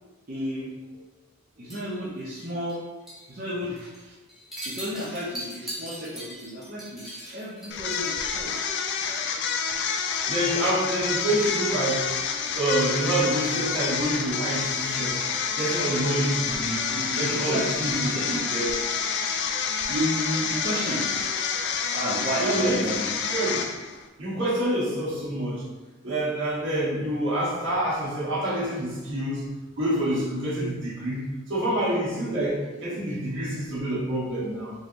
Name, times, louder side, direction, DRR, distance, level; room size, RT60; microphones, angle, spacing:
voice 1, 0.3-1.0 1.6-2.8 3.3-4.1 4.6-8.6 16.9-18.4 19.1-19.3 19.6-21.2 21.9-23.3, equal, 45° right, -9 dB, 0.7 m, -32 dB
sound 1, 1.7-2.8 3.1-3.3 3.6-4.0 4.3-8.2, right 1 dB, ahead, 0.7 m, -40 dB
sound 2, 7.7-24.0, left 6 dB, 55° left, 0.3 m, -28 dB
voice 2, 10.3-12.1 12.5-15.2 15.6-16.9 17.2-18.8 22.4-22.8 23.3-23.7 24.2-25.7 26.0-34.7, right 1 dB, 65° right, -7 dB, 1.3 m, -27 dB
3.8 x 3.0 x 2.6 m, 1.2 s
head